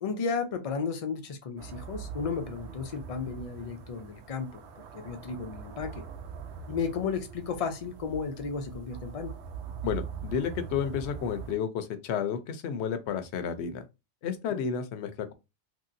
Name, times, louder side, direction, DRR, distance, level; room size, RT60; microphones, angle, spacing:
voice 1, 0.0-4.6 4.9-6.0 6.7-9.3 14.5-14.6, left 5 dB, 55° left, 0.4 m, -33 dB
sound 1, 1.6-11.5, right 6 dB, 70° right, 0.8 m, -42 dB
voice 2, 9.8-13.8 14.2-15.3, left 7 dB, 70° left, 0.8 m, -31 dB
3.0 x 2.7 x 2.6 m
omnidirectional pair, 1.2 m